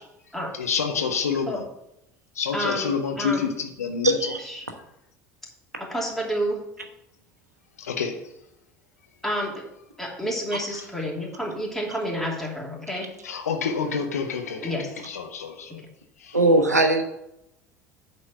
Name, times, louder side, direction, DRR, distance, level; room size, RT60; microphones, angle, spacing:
voice 1, 0.5-1.6 2.3-4.3 7.8-8.3 10.7-10.8 13.2-15.8 16.2-16.4, left 6 dB, 75° left, 6 dB, 1.0 m, -28 dB
voice 2, 2.5-2.9 3.2-3.4 4.4-4.6 5.8-6.6 9.2-9.6 10.0-13.1 14.6-14.9 15.7-15.8, equal, 5° left, -2 dB, 2.8 m, -29 dB
voice 3, 4.0-4.4 16.3-17.0, right 1 dB, 85° right, 5 dB, 1.0 m, -19 dB
9.0 x 4.3 x 6.9 m, 0.83 s
figure-of-eight pair, 65°, 8 cm